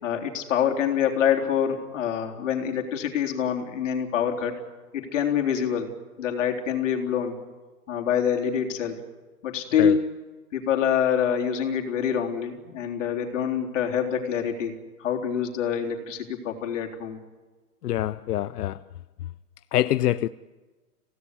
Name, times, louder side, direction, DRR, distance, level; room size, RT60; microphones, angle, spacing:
voice 1, 0.0-4.5 4.9-5.9 6.2-7.4 7.9-9.0 9.4-10.0 10.5-14.7 15.0-17.2, left 8 dB, 55° left, 3.8 m, -26 dB
voice 2, 17.8-18.8 19.7-20.3, left 13 dB, 90° left, 0.7 m, -25 dB
27.5 x 17.5 x 9.8 m
hypercardioid pair, 175°, 45 cm